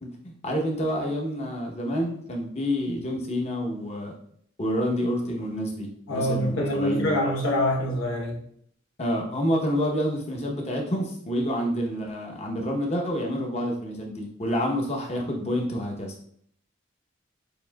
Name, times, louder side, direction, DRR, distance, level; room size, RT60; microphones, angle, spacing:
voice 1, 0.0-4.1 4.6-7.2 9.0-16.1, equal, 35° left, 0 dB, 0.8 m, -28 dB
voice 2, 6.1-8.4, left 1 dB, 80° left, -1 dB, 1.0 m, -25 dB
6.6 x 2.6 x 2.3 m, 0.64 s
head